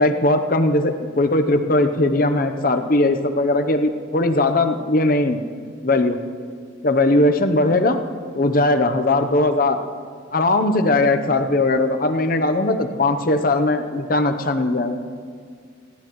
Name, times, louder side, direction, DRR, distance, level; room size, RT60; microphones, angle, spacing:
voice 1, 0.0-5.4 5.8-6.2 6.8-8.0 8.3-9.8 10.3-15.0, left 2 dB, 45° left, 7 dB, 0.8 m, -19 dB
27.0 x 11.5 x 3.1 m, 2.1 s
head